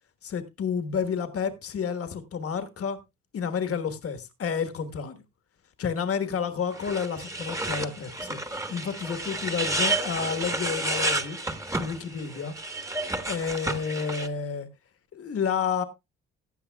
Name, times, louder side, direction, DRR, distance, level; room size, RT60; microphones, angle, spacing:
voice 1, 0.2-3.0 3.3-5.2 5.8-11.4 11.7-12.5 13.3-14.7 15.1-15.8, left 6 dB, 50° left, 1.4 m, -30 dB
sound 1, 6.7-14.3, right 2 dB, 10° right, 1.3 m, -31 dB
15.5 x 9.8 x 2.3 m
cardioid pair, 90°, 30 cm